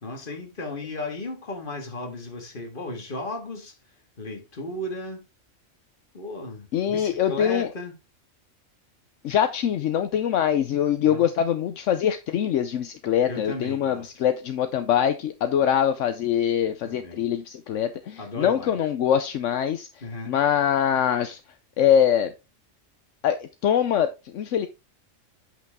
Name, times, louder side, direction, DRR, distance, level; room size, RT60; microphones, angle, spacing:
voice 1, 0.0-3.8 4.2-5.3 6.1-8.0 11.0-11.3 13.3-14.1 16.8-17.2 18.2-18.8 20.0-20.4, left 2 dB, 45° left, 2.0 m, -35 dB
voice 2, 6.7-7.7 9.2-21.4 21.8-22.3 23.2-24.7, left 9 dB, 75° left, 1.0 m, -23 dB
8.1 x 6.2 x 3.6 m
omnidirectional pair, 1.3 m